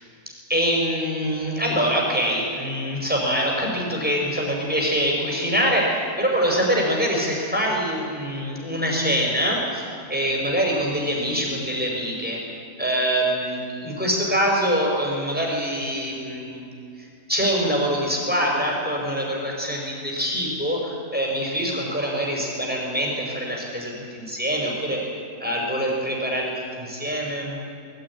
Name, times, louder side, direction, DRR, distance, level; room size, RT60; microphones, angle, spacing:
voice 1, 0.5-12.4 12.8-16.6 17.0-25.0 25.4-26.5 26.8-27.6, equal, 5° right, -2 dB, 5.6 m, -24 dB
20.5 x 15.0 x 9.9 m, 2.5 s
omnidirectional pair, 1.5 m